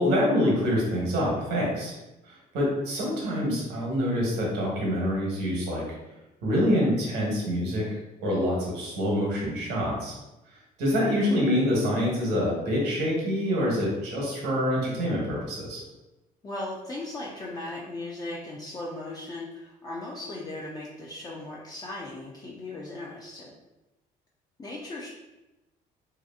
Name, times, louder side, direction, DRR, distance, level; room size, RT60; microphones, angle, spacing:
voice 1, 0.0-1.9 2.3-5.8 6.4-7.8 8.2-10.2 10.8-15.8, equal, 90° right, -3 dB, 1.0 m, -26 dB
voice 2, 16.4-23.5 24.6-25.1, left 2 dB, 25° left, -4 dB, 0.4 m, -37 dB
2.8 x 2.4 x 2.3 m, 1.0 s
cardioid pair, 110°, 17 cm